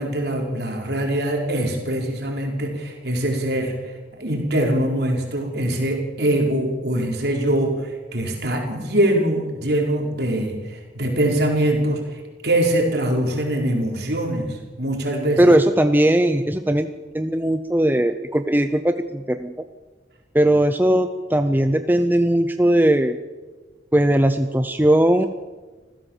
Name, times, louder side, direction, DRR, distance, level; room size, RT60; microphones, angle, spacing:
voice 1, 0.0-15.5, right 1 dB, 60° right, 1 dB, 4.6 m, -23 dB
voice 2, 15.4-16.9 17.1-19.5 20.3-23.2 23.9-25.3, right 1 dB, 10° right, 8 dB, 0.6 m, -18 dB
26.0 x 15.5 x 7.3 m, 1.3 s
head